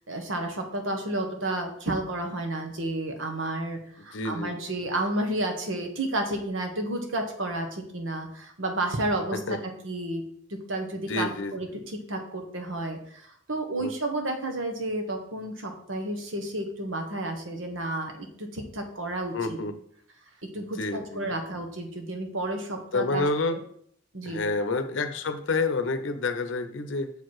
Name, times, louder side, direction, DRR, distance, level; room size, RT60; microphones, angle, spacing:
voice 1, 0.1-9.4 9.8-10.2 10.5-19.3 20.5-23.2 23.5-23.6 24.1-24.4, right 1 dB, 80° right, 4 dB, 1.3 m, -31 dB
voice 2, 4.1-4.6 9.3-9.6 11.1-11.5 13.8-13.9 19.3-19.8 20.8-21.2 22.9-23.6 24.2-27.1, left 3 dB, 70° left, 10 dB, 0.6 m, -28 dB
6.8 x 4.6 x 4.7 m, 0.64 s
head